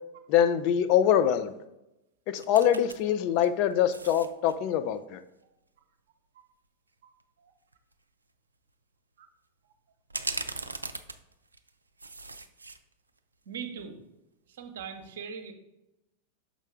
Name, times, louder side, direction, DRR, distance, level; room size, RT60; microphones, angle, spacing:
voice 1, 0.3-1.5 2.3-5.2, left 9 dB, 45° left, 10 dB, 0.4 m, -24 dB
sound 1, 2.4-3.0 3.4-4.6 7.2-7.3 7.7-7.9 10.1-11.7 12.0-12.8 13.2-13.3, right 3 dB, 80° right, 0.4 m, -38 dB
voice 2, 7.0-7.5 9.2-9.3 13.5-14.0 14.5-15.5, right 6 dB, 60° right, 6 dB, 0.8 m, -41 dB
6.1 x 5.4 x 3.5 m, 0.90 s
figure-of-eight pair, 90°, 0 cm